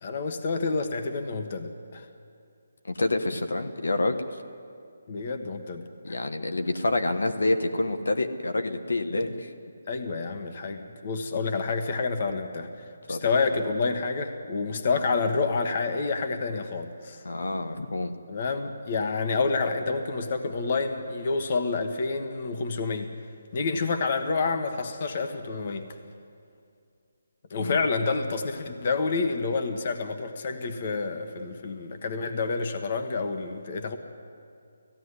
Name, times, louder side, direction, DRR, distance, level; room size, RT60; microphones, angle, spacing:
voice 1, 0.0-2.1 5.1-6.2 9.1-9.4 9.9-12.7 13.1-17.2 18.3-23.1 23.5-25.9 27.5-34.0, left 4 dB, 40° left, 6 dB, 1.4 m, -28 dB
voice 2, 2.9-4.2 6.0-9.5 13.1-13.2 17.2-18.1 27.6-27.8, left 2 dB, 90° left, 6 dB, 1.4 m, -27 dB
17.0 x 16.0 x 9.8 m, 2.4 s
hypercardioid pair, 165°, 0 cm